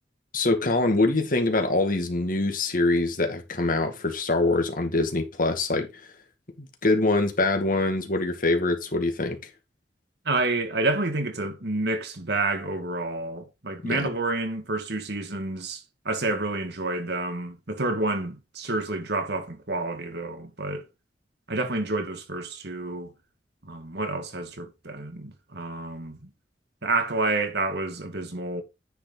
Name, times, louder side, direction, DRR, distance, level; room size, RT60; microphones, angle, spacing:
voice 1, 0.3-6.0 6.6-9.4 13.8-14.0, left 2 dB, 50° left, 2.1 m, -24 dB
voice 2, 10.3-20.8 21.5-23.1 23.6-26.2 26.8-28.6, right 2 dB, 65° right, 2.1 m, -29 dB
10.0 x 5.5 x 4.1 m
head